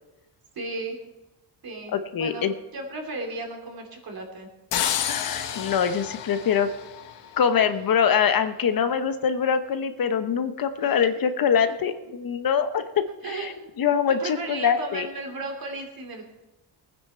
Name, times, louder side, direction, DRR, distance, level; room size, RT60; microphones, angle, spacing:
voice 1, 0.5-1.0 1.6-4.5 10.8-11.1 13.0-13.6 14.1-16.2, right 2 dB, 55° right, 2 dB, 3.2 m, -35 dB
voice 2, 1.9-2.5 5.1-6.7 7.4-12.8 13.3-13.5 13.8-15.1, left 7 dB, 55° left, 10 dB, 0.9 m, -24 dB
sound 1, 4.7-7.6, left 9 dB, 75° left, 1.2 m, -30 dB
19.5 x 9.7 x 4.5 m, 1.0 s
cardioid pair, 115°, 43 cm